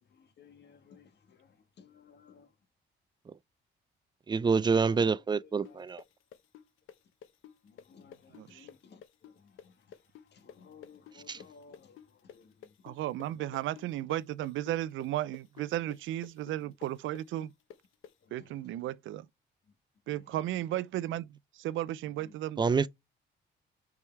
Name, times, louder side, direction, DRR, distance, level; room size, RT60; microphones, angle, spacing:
voice 1, 0.1-2.5 4.7-5.9 7.6-12.7 13.3-13.6 16.6-16.7 18.2-18.9 20.1-20.7 22.0-22.3, left 5 dB, 60° left, 1.5 m, -58 dB
voice 2, 4.3-6.0 11.3-11.4 22.6-22.9, right 5 dB, 20° right, 0.4 m, -27 dB
sound 1, 5.6-13.3 13.5-18.1, left 9 dB, 85° left, 0.9 m, -51 dB
voice 3, 8.3-8.7 12.8-17.5 18.3-19.3 20.1-22.6, right 14 dB, 80° right, 0.5 m, -34 dB
5.4 x 4.8 x 4.5 m
cardioid pair, 90°, 20 cm